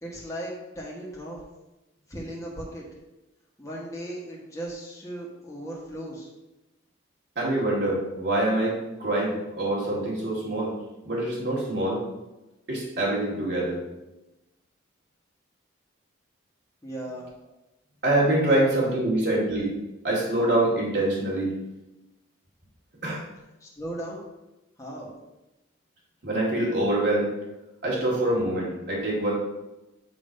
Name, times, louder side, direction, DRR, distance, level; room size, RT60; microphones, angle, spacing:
voice 1, 0.0-1.4 2.1-2.8 3.6-6.3 16.8-17.3 18.5-18.6 18.9-19.0 23.6-24.3 24.8-25.1, right 1 dB, 15° left, -4 dB, 1.4 m, -37 dB
voice 2, 7.4-10.8 11.0-12.0 12.7-13.8 18.0-19.7 20.0-21.5 23.0-23.2 26.2-27.3 27.8-29.3, right 1 dB, 55° right, -5 dB, 2.1 m, -25 dB
7.5 x 3.2 x 5.2 m, 1.0 s
head